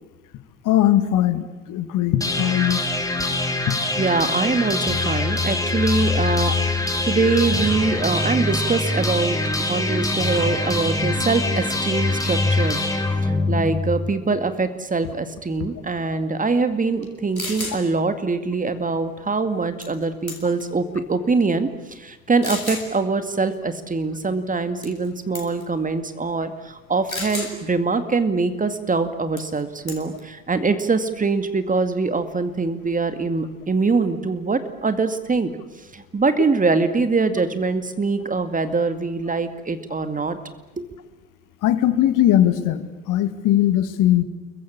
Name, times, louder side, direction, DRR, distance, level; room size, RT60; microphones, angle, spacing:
voice 1, 0.6-2.8 3.7-3.8 41.6-44.2, left 12 dB, 50° left, 11 dB, 2.2 m, -19 dB
sound 1, 2.2-14.2, left 2 dB, 10° left, 4.7 m, -23 dB
voice 2, 4.0-12.8 13.2-35.5 35.9-40.4 40.8-40.9, right 4 dB, 20° right, 9 dB, 2.2 m, -23 dB
sound 2, 17.0-17.1 17.3-17.8 19.8-20.0 20.3-20.7 21.4-21.5 22.4-22.9 24.8-25.1 25.3-25.6 27.1-27.5 29.4-29.6 29.9-30.2, left 1 dB, 90° left, 3.6 m, -31 dB
29.5 x 23.0 x 8.7 m, 1.1 s
figure-of-eight pair, 60°, 41 cm